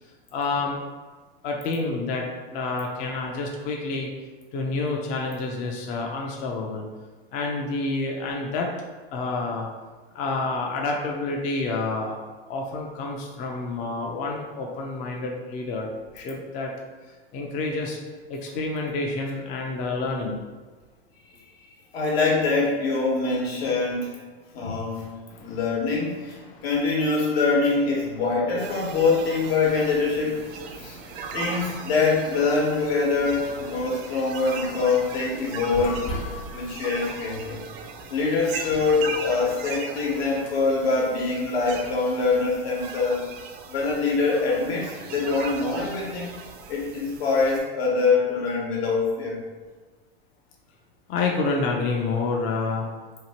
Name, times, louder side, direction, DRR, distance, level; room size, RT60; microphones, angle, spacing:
voice 1, 0.3-0.8 1.4-4.1 4.5-6.9 7.3-8.7 9.1-9.7 10.1-12.2 12.5-16.7 17.3-18.0 18.3-20.4 25.3-25.6 26.4-26.7 30.7-31.4 51.1-52.9, left 3 dB, 25° left, 0 dB, 0.3 m, -28 dB
voice 2, 21.9-24.2 24.5-25.1 25.4-30.4 30.7-31.0 31.3-36.1 36.5-37.6 38.1-43.3 43.7-46.3 46.7-49.4, left 4 dB, 75° left, -3 dB, 1.0 m, -24 dB
sound 1, 28.6-47.6, right 5 dB, 60° right, 0.5 m, -38 dB
sound 2, 35.1-42.6, left 2 dB, 55° left, 0.7 m, -40 dB
2.9 x 2.4 x 2.8 m, 1.4 s
hypercardioid pair, 110°, 31 cm